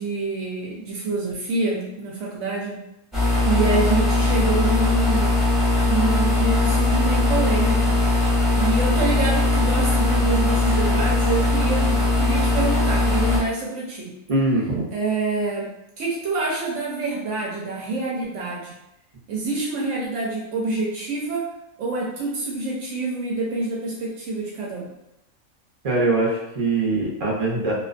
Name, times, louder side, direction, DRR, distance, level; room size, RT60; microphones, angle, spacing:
voice 1, 0.0-2.8 3.4-5.3 5.9-8.0 8.5-14.1 14.9-15.7 16.0-18.7 19.3-21.5 21.8-24.9, right 3 dB, 70° right, -3 dB, 0.8 m, -26 dB
sound 1, 3.1-13.4, left 2 dB, ahead, 0.7 m, -20 dB
voice 2, 14.3-14.9 25.8-27.7, right 2 dB, 40° right, -5 dB, 0.5 m, -22 dB
2.4 x 2.2 x 2.5 m, 0.86 s
omnidirectional pair, 1.5 m